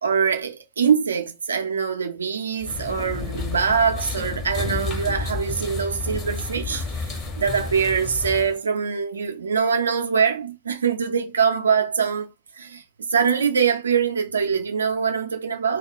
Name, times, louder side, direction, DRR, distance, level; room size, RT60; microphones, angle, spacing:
voice 1, 0.0-12.3 12.5-12.8 13.1-15.8, right 6 dB, 70° right, 0.5 m, -23 dB
sound 1, 2.6-8.6, left 3 dB, 35° left, 1.1 m, -31 dB
2.3 x 2.2 x 3.4 m
figure-of-eight pair, 90°, 0 cm